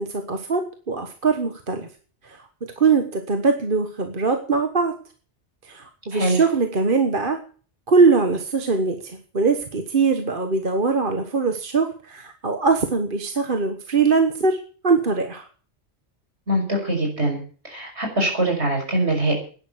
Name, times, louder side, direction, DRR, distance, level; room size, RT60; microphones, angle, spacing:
voice 1, 0.0-1.9 2.2-2.4 2.8-4.9 5.6-7.4 7.9-15.5, right 4 dB, 50° right, 6 dB, 1.5 m, -22 dB
voice 2, 6.1-6.4 16.5-17.4 17.6-19.4, right 1 dB, 75° right, 1 dB, 6.5 m, -23 dB
11.5 x 10.5 x 8.3 m, 0.41 s
omnidirectional pair, 1.1 m